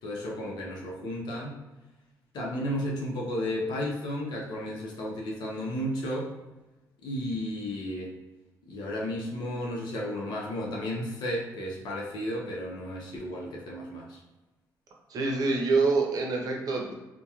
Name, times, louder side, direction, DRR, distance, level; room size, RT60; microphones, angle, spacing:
voice 1, 0.0-1.5 2.3-6.3 7.0-8.1 8.7-14.2, equal, 75° left, -3 dB, 0.6 m, -33 dB
voice 2, 15.1-16.9, right 3 dB, 55° right, 0 dB, 0.7 m, -26 dB
2.9 x 2.2 x 2.3 m, 1.1 s
cardioid pair, 95°, 7 cm